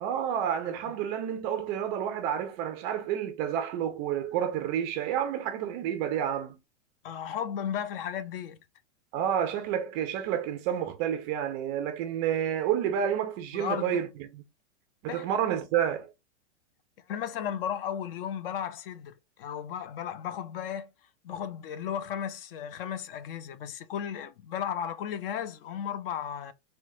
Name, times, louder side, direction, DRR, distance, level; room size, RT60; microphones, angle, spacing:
voice 1, 0.0-6.6 9.1-14.4 15.0-16.1, right 9 dB, 25° right, 0.3 m, -30 dB
voice 2, 7.0-8.6 13.5-14.0 15.1-15.3 17.1-20.9 21.2-26.5, left 9 dB, 50° left, 0.5 m, -35 dB
4.4 x 2.2 x 2.6 m
hypercardioid pair, 125°, 37 cm